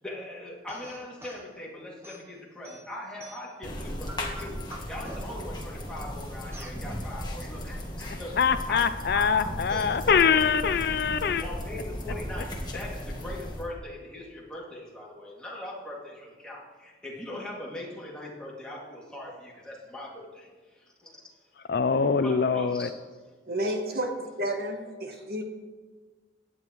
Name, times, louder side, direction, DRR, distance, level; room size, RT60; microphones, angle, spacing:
voice 1, 0.0-8.4 8.7-8.8 9.1-9.2 9.7-10.1 11.4-21.2 22.2-22.9 23.7-23.8 25.1-25.4, left 1 dB, 5° left, -6 dB, 2.3 m, -41 dB
sound 1, 0.7-1.5 2.0-3.6 4.1-5.6 6.5-6.8, equal, 15° right, 1.0 m, -45 dB
sound 2, 3.6-13.6, left 1 dB, 20° left, 1.5 m, -36 dB
voice 2, 8.4-11.4 21.7-22.9, left 6 dB, 55° left, 12 dB, 0.4 m, -23 dB
voice 3, 23.5-24.1 24.4-25.4, right 1 dB, 50° right, 4 dB, 1.1 m, -30 dB
16.5 x 9.7 x 3.1 m, 1.4 s
head